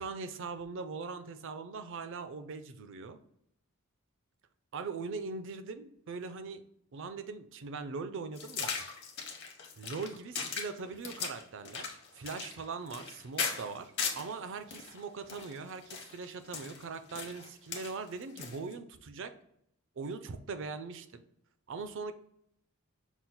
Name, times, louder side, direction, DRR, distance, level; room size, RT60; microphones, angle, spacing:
voice 1, 0.0-3.2 4.7-6.6 6.9-8.8 9.8-19.3 20.0-21.2 21.7-22.1, right 4 dB, 60° right, 9 dB, 0.4 m, -41 dB
sound 1, 8.4-14.3 14.7-18.7, left 6 dB, 50° left, 0.9 m, -38 dB
6.0 x 2.1 x 3.9 m, 0.73 s
head